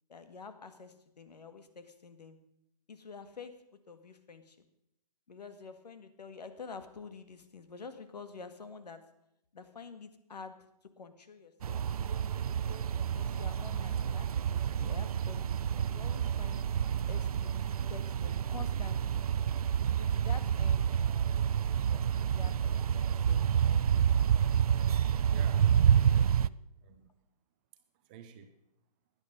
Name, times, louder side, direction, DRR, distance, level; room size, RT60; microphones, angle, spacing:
voice 1, 0.1-2.4 2.9-4.6 5.3-9.0 9.5-11.8 12.5-16.6 17.1-19.2 20.0-21.5 21.9-23.9, left 5 dB, 80° left, 1.9 m, -49 dB
sound 1, 11.6-26.5, right 8 dB, 65° right, 0.5 m, -29 dB
voice 2, 25.3-26.6 26.8-27.1 28.0-28.5, right 8 dB, 15° right, 0.5 m, -52 dB
16.0 x 11.0 x 5.2 m
hypercardioid pair, 165°, 21 cm